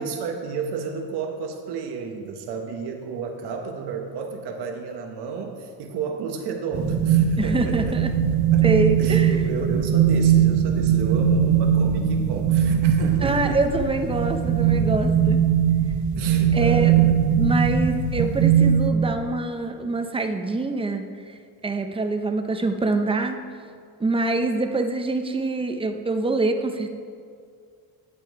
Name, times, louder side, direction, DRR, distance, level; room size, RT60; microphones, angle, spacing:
voice 1, 0.0-7.8 8.3-8.7 9.0-13.6 16.1-17.3, right 5 dB, 80° right, 3 dB, 1.1 m, -32 dB
sound 1, 6.7-18.9, right 8 dB, 45° right, 1.0 m, -20 dB
voice 2, 7.4-8.1 8.6-9.4 13.2-15.4 16.5-21.3 21.6-23.4 24.0-26.9, right 2 dB, 15° right, 6 dB, 0.5 m, -25 dB
9.0 x 8.8 x 4.6 m, 2.2 s
cardioid pair, 160°, 40 cm